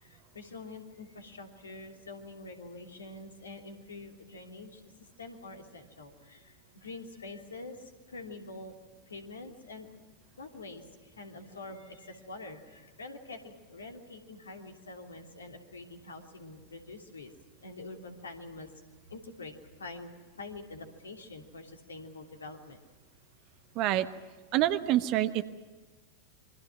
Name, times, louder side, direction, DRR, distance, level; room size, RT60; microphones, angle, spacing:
voice 1, 0.0-4.8 5.2-8.7 9.1-9.9 10.4-17.3 17.6-18.7 19.1-20.1 20.4-22.8, left 3 dB, 70° left, 4 dB, 3.0 m, -46 dB
voice 2, 23.7-24.1 24.5-25.4, right 13 dB, 40° right, 12 dB, 1.2 m, -26 dB
28.0 x 24.0 x 6.0 m, 1.3 s
figure-of-eight pair, 90°, 0 cm